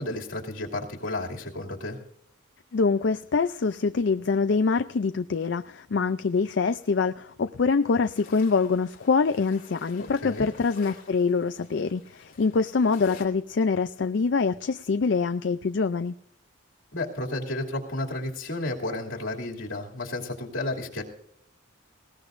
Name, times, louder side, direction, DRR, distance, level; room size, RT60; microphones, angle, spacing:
voice 1, 0.0-2.0 10.0-10.5 16.9-21.0, left 2 dB, 75° left, 0 dB, 2.7 m, -32 dB
voice 2, 2.7-16.1, left 4 dB, 60° left, 10 dB, 0.4 m, -25 dB
sound 1, 7.9-13.3, left 4 dB, 45° left, 2.6 m, -50 dB
20.0 x 17.5 x 2.6 m, 0.71 s
head